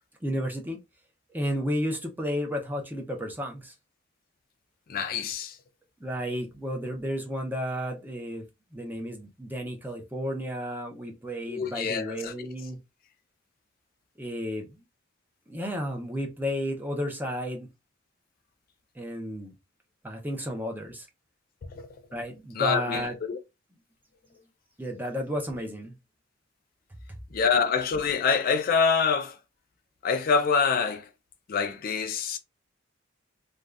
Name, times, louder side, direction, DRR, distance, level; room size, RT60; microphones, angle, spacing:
voice 1, 0.2-0.8 1.3-3.7 6.0-8.4 8.7-12.8 14.2-14.7 15.5-17.7 19.0-19.5 20.0-21.1 22.1-23.1 24.8-26.0, equal, 10° right, 0.6 m, -32 dB
voice 2, 4.9-5.6 11.5-12.5 21.6-21.9 22.6-23.4 27.3-29.4 30.0-31.1 31.5-32.4, left 5 dB, 45° left, 0.3 m, -26 dB
2.5 x 2.3 x 3.2 m
head